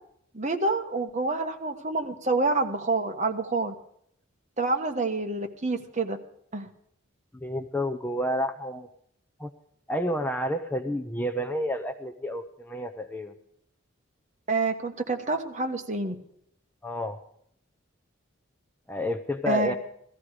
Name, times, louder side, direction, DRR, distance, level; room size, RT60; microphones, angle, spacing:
voice 1, 0.3-3.7 4.6-6.2 6.5-6.7 14.5-16.1 19.5-19.7, right 3 dB, 35° right, 5 dB, 1.3 m, -27 dB
voice 2, 7.3-8.9 9.4-9.5 9.9-13.3 16.8-17.2 18.9-19.7, equal, 10° left, 6 dB, 0.6 m, -30 dB
17.5 x 14.0 x 5.0 m, 0.70 s
head